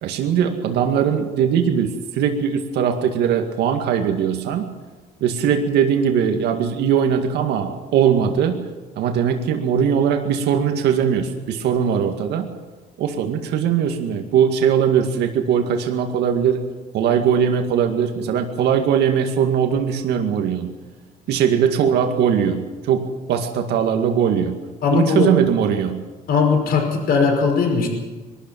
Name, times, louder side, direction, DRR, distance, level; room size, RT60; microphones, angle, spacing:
voice 1, 0.0-4.7 5.2-8.6 9.0-12.5 13.0-16.6 16.9-20.7 21.3-24.6 24.9-26.0, right 8 dB, 80° right, 4 dB, 2.1 m, -20 dB
voice 2, 24.8-25.3 26.3-27.9, left 5 dB, 60° left, 3 dB, 5.4 m, -18 dB
22.5 x 13.0 x 9.3 m, 1.3 s
cardioid pair, 110°, 17 cm